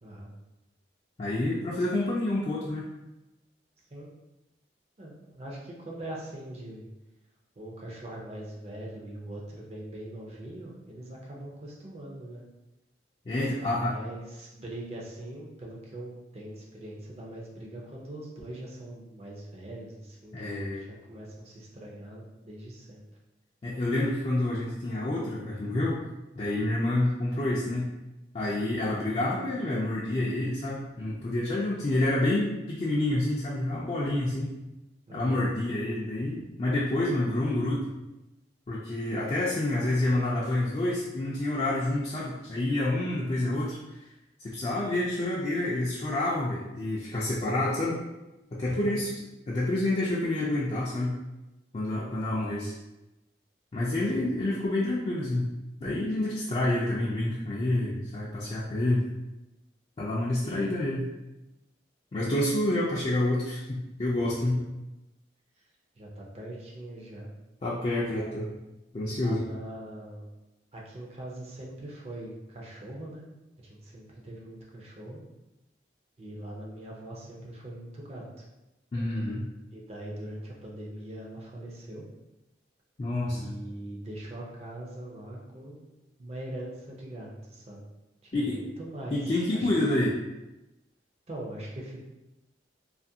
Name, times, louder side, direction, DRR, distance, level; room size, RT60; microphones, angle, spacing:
voice 1, 0.0-0.3 3.9-4.1 5.0-6.9 7.6-12.4 13.6-23.0 35.1-35.4 48.6-49.0 54.1-54.3 64.6-64.7 66.0-67.3 68.1-68.4 69.1-70.2 70.7-73.2 73.6-75.2 76.2-78.4 79.7-82.1 83.3-85.8 86.2-87.8 88.2-89.2 89.5-89.9 91.3-92.0, right 1 dB, 35° right, -3 dB, 0.5 m, -42 dB
voice 2, 1.2-2.8 13.3-14.0 20.3-20.8 23.6-26.0 26.4-27.9 28.3-34.6 35.1-37.9 38.7-44.0 44.4-48.0 48.5-49.1 49.5-51.2 51.7-52.7 53.7-55.5 55.8-59.1 60.0-61.1 62.1-64.6 67.6-68.5 68.9-69.4 78.9-79.5 83.0-83.4 88.3-88.6 89.1-90.1, left 1 dB, 30° left, -6 dB, 0.3 m, -28 dB
2.5 x 2.4 x 2.7 m, 1.0 s
head